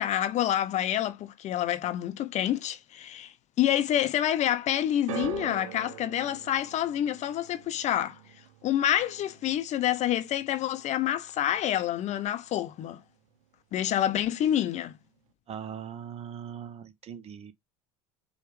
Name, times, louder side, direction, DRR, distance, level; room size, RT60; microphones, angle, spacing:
voice 1, 0.0-8.2 8.6-13.0 13.7-14.9, left 11 dB, 40° left, 0.5 m, -28 dB
sound 1, 5.1-11.4 11.6-12.3 13.0-13.1, right 13 dB, 70° right, 0.5 m, -44 dB
voice 2, 15.5-17.5, right 8 dB, 35° right, 0.7 m, -40 dB
4.5 x 2.3 x 3.1 m
hypercardioid pair, 75°, 18 cm